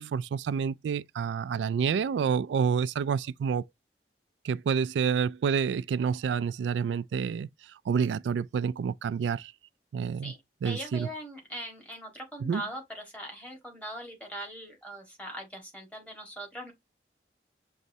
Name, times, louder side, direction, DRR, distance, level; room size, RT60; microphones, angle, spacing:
voice 1, 0.0-3.6 4.4-7.5 7.9-9.5 9.9-10.3 10.6-11.1 12.4-12.6, right 6 dB, 90° right, 0.3 m, -28 dB
voice 2, 10.6-16.7, right 1 dB, 10° left, 1.5 m, -41 dB
6.5 x 3.1 x 2.7 m
head